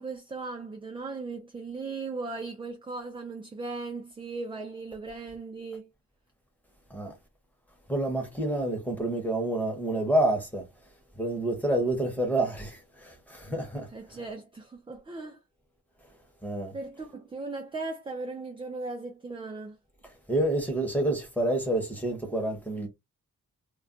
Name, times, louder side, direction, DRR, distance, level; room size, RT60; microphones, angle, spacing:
voice 1, 0.0-5.9 13.9-15.4 16.7-19.8, right 3 dB, 15° right, 0.3 m, -37 dB
voice 2, 7.9-10.7 11.1-13.9 16.4-16.7 20.3-22.9, right 1 dB, 5° left, 0.8 m, -28 dB
2.3 x 2.2 x 3.7 m
wide cardioid pair, 175°, 35 cm